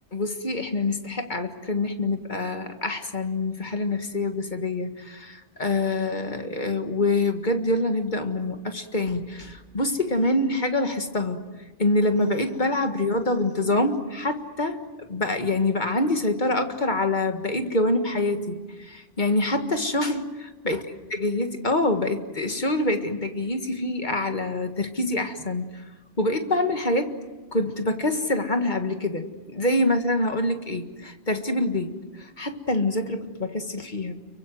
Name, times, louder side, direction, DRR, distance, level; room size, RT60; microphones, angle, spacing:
voice 1, 0.1-11.4 11.8-20.8 21.2-25.8 26.2-27.2 27.5-34.1, left 2 dB, 45° left, 6 dB, 1.9 m, -26 dB
30.0 x 24.0 x 7.8 m, 1.2 s
omnidirectional pair, 1.1 m